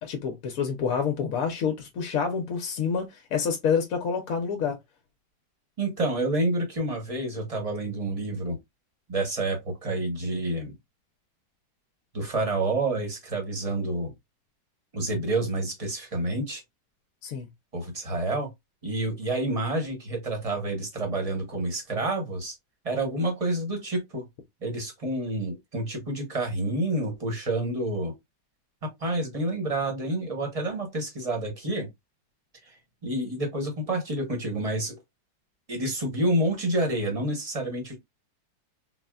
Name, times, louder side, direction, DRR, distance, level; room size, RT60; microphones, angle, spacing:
voice 1, 0.0-4.8 17.2-17.5, left 6 dB, 65° left, 1.0 m, -28 dB
voice 2, 5.8-8.6 9.1-10.7 12.1-14.1 14.9-16.6 17.7-18.5 18.8-22.5 22.8-24.2 24.6-28.1 28.8-31.9 32.7-32.8 33.0-35.0 35.7-38.0, right 1 dB, 30° right, 0.8 m, -28 dB
4.1 x 2.1 x 2.3 m
omnidirectional pair, 1.9 m